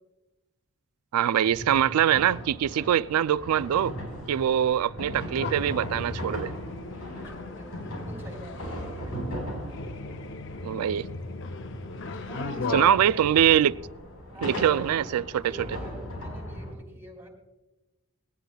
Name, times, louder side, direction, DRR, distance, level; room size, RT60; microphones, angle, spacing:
voice 1, 1.1-3.9 4.3-6.5 10.6-11.1 12.7-13.8 14.4-15.8, right 10 dB, 85° right, 0.3 m, -23 dB
sound 1, 1.5-16.7, equal, 85° left, 4.5 m, -38 dB
sound 2, 5.4-12.9, left 3 dB, 55° left, 0.6 m, -37 dB
voice 2, 6.8-9.1 12.2-13.6 14.3-14.9 15.4-17.3, right 1 dB, 10° right, 2.8 m, -46 dB
20.5 x 17.0 x 2.3 m
head